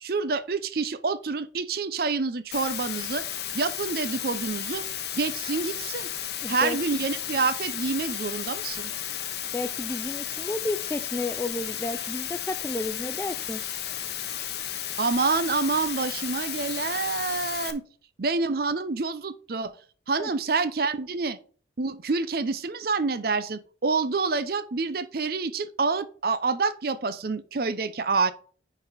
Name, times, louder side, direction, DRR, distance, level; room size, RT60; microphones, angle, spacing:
voice 1, 0.0-3.2 3.5-4.8 5.2-6.1 6.5-8.9 15.0-17.8 18.2-19.7 20.1-21.4 21.8-28.3, right 4 dB, 50° right, 0.6 m, -27 dB
Water, 2.5-17.7, left 10 dB, 55° left, 0.8 m, -33 dB
voice 2, 6.4-6.8 9.5-13.6 20.2-20.3, left 2 dB, 10° left, 0.3 m, -32 dB
9.7 x 4.1 x 4.1 m
head